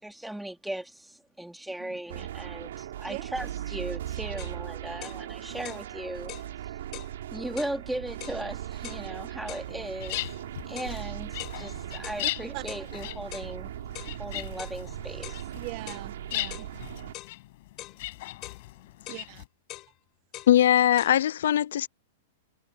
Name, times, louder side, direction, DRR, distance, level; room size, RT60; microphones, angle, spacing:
voice 1, 0.0-6.3 6.6-6.8 7.3-10.2 10.7-13.7 14.2-15.4, right 1 dB, 5° right, 3.4 m, -37 dB
sound 1, 2.1-17.1, right 12 dB, 75° right, 4.5 m, -39 dB
sound 2, 4.4-4.6 5.0-5.2 5.6-5.9 6.3-6.5 6.9-7.1 7.6-7.8 8.2-8.4 8.8-9.1 9.5-9.7 10.1-10.3 10.8-11.0 11.4-11.6 12.0-12.2 12.7-12.9 13.3-13.5 13.9-14.2 14.6-14.8 15.2-15.4 15.9-16.1 16.5-16.7 17.1-17.4 17.8-18.0 18.4-18.6 19.1-19.3 19.7-19.9 20.3-20.5 21.0-21.1, left 17 dB, 35° left, 4.9 m, -43 dB
sound 3, 9.7-19.5, left 18 dB, 55° left, 6.7 m, -39 dB
voice 2, 12.2-12.6 14.1-14.2 15.5-16.7 19.1-19.4, right 23 dB, 45° right, 1.5 m, -40 dB
voice 3, 20.5-21.9, left 11 dB, 75° left, 0.5 m, -21 dB
hypercardioid pair, 140°, 0 cm